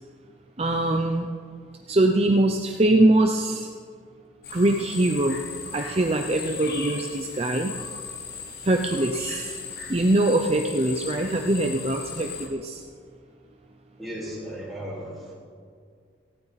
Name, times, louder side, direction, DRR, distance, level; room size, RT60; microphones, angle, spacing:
voice 1, 0.6-1.3 1.9-3.7 4.5-5.4 5.7-7.7 8.6-9.5 9.9-12.8, right 1 dB, 30° right, 3 dB, 0.6 m, -22 dB
sound 1, 4.4-12.5, left 5 dB, 55° left, 2.0 m, -38 dB
voice 2, 14.0-15.3, equal, ahead, -7 dB, 4.0 m, -35 dB
17.5 x 16.5 x 4.1 m, 2.1 s
head